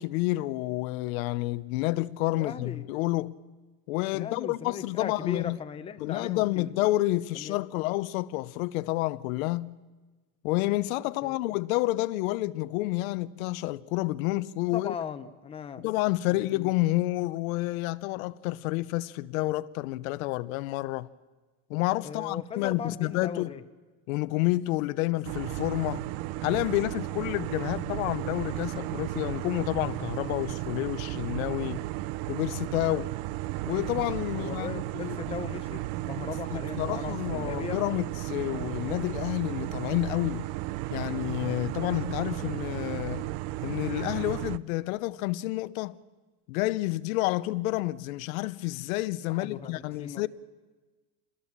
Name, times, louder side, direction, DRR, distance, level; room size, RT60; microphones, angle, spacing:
voice 1, 0.0-3.3 3.9-5.6 6.0-9.8 10.4-14.9 15.8-21.1 21.7-23.5 24.1-26.1 26.4-31.8 32.3-33.1 33.7-35.2 36.2-36.3 36.5-40.4 40.9-43.3 43.6-46.0 46.5-50.3, left 18 dB, 70° left, 0.9 m, -29 dB
voice 2, 2.3-2.8 4.1-6.8 7.3-7.6 11.2-11.4 14.7-15.9 16.5-16.7 22.0-23.6 34.3-37.8 49.3-49.7 50.0-50.2, left 7 dB, 15° left, 0.8 m, -38 dB
sound 1, 25.2-44.6, right 17 dB, 50° right, 0.7 m, -34 dB
28.0 x 21.5 x 7.4 m
supercardioid pair, 160°, 43 cm